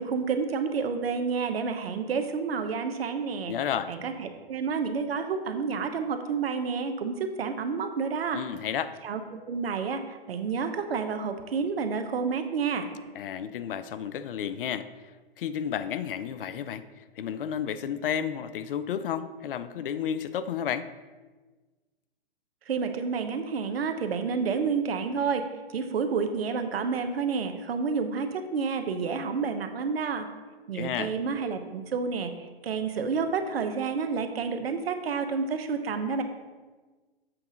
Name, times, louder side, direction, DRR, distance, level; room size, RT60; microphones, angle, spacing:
voice 1, 0.0-3.5 3.9-8.4 9.0-9.2 9.5-12.9 22.7-25.5 25.7-30.3 30.7-32.3 32.6-36.2, right 5 dB, 75° right, 7 dB, 1.0 m, -29 dB
voice 2, 3.5-3.9 8.3-8.9 13.1-14.9 15.4-20.9 30.7-31.1, left 8 dB, 60° left, 13 dB, 0.5 m, -32 dB
7.6 x 3.9 x 6.2 m, 1.3 s
hypercardioid pair, 130°, 30 cm